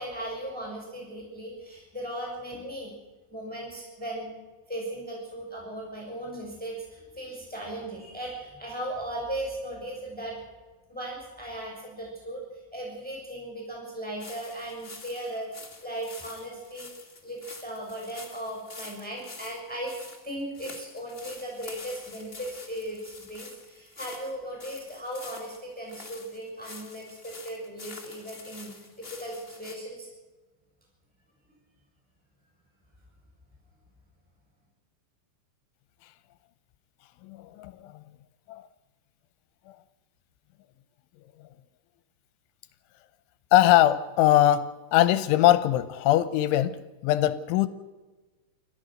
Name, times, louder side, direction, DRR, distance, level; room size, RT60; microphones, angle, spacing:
voice 1, 0.0-2.9 3.3-4.3 4.7-10.4 10.9-15.5 15.8-20.0 20.2-30.1, right 1 dB, ahead, -2 dB, 6.4 m, -37 dB
sound 1, 14.2-29.7, left 3 dB, 25° left, 1.2 m, -47 dB
voice 2, 37.2-37.9 38.5-38.6 43.5-47.7, left 13 dB, 85° left, 14 dB, 3.1 m, -22 dB
29.5 x 14.0 x 6.4 m, 1.2 s
omnidirectional pair, 5.5 m